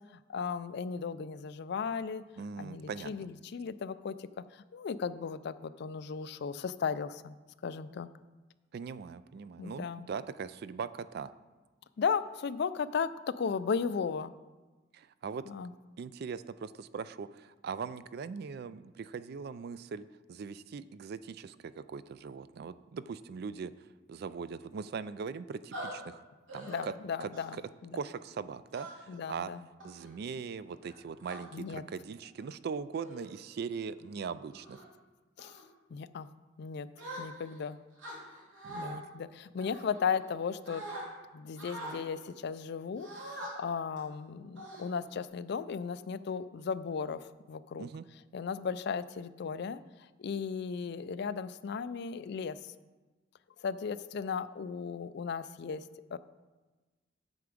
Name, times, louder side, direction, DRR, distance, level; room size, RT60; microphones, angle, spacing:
voice 1, 0.1-2.2 2.6-7.4 7.6-8.1 9.6-10.1 12.0-13.1 13.4-14.3 15.5-15.7 26.6-28.0 29.1-29.7 31.5-31.8 35.4-35.6 35.9-36.3 36.6-36.9 37.2-37.8 38.7-40.8 41.3-47.9 48.3-49.8 50.2-52.7 53.6-55.8 56.1-56.2, left 6 dB, 60° left, 15 dB, 0.4 m, -36 dB
voice 2, 2.4-3.3 8.7-11.3 14.9-15.4 16.0-23.7 24.1-26.2 26.5-26.9 27.2-27.6 27.9-29.5 29.8-34.8 38.6-39.0 47.8-48.0, right 5 dB, 55° right, 15 dB, 0.3 m, -40 dB
sound 1, 25.7-25.9 26.5-26.8 27.3-27.6 28.7-29.2 29.8-30.1 30.8-31.4 32.2-32.4 32.9-33.3 33.8-34.0 34.5-34.9 35.4-35.6 37.0-37.6 38.0-38.9 39.6-40.4 40.7-41.0 41.6-42.0 43.0-43.5 44.0-44.1 44.6-45.2, right 1 dB, 80° right, 2.7 m, -44 dB
8.1 x 7.0 x 5.0 m, 1.2 s
head